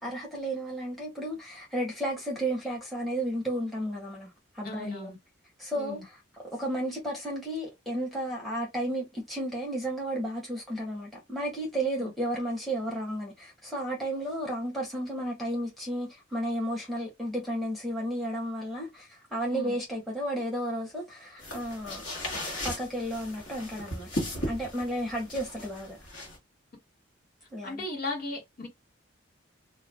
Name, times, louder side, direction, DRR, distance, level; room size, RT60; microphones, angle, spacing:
voice 1, 0.0-4.3 4.5-5.1 5.6-6.0 6.5-22.0 22.6-24.1 24.3-26.0 27.5-27.8, right 1 dB, ahead, 0.8 m, -33 dB
voice 2, 4.6-5.2 5.7-6.0 12.0-12.1 19.5-19.7 27.6-28.7, left 2 dB, 45° left, 1.1 m, -36 dB
sound 1, 21.4-26.4, left 1 dB, 65° left, 1.2 m, -37 dB
2.3 x 2.1 x 3.3 m
head